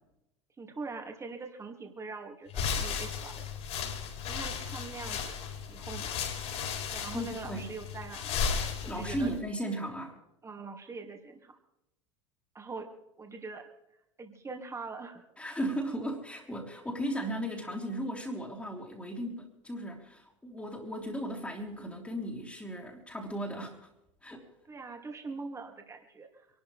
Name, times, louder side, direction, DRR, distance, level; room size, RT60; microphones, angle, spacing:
voice 1, 0.6-3.8 4.3-5.3 5.7-6.2 6.9-8.4 8.8-9.3 10.4-11.6 12.5-12.9 13.2-13.6 14.2-15.2 24.6-26.5, right 4 dB, 20° right, 3 dB, 2.8 m, -43 dB
sound 1, 2.5-9.4, left 6 dB, 45° left, 4.1 m, -35 dB
voice 2, 7.1-7.7 8.9-10.2 15.4-23.9 24.2-24.5, equal, 10° left, -3 dB, 3.2 m, -36 dB
27.0 x 12.5 x 3.5 m, 0.85 s
figure-of-eight pair, 75°, 16 cm